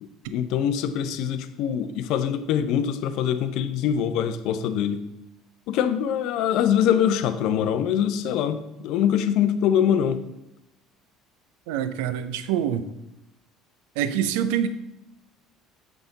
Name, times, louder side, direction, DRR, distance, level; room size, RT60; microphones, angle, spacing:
voice 1, 0.0-5.0 5.7-10.2, left 9 dB, 60° left, 10 dB, 0.6 m, -24 dB
voice 2, 11.7-12.8 14.0-14.7, right 9 dB, 70° right, 11 dB, 0.5 m, -25 dB
6.9 x 6.0 x 3.8 m, 0.89 s
figure-of-eight pair, 60°, 0 cm